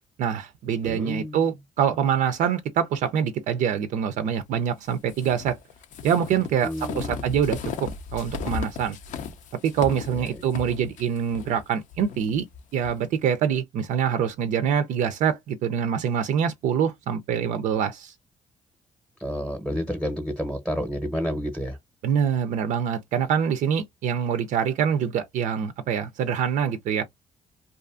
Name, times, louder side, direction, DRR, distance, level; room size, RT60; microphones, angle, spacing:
voice 1, 0.2-5.6 6.0-9.0 9.6-12.5 12.7-18.1 22.0-27.0, right 8 dB, 80° right, 0.4 m, -25 dB
voice 2, 0.8-1.5 6.6-7.3 10.1-10.4 19.2-21.8, equal, ahead, 0.7 m, -30 dB
sound 1, 5.1-13.0, left 6 dB, 75° left, 0.5 m, -36 dB
2.6 x 2.4 x 2.4 m
cardioid pair, 95°, 13 cm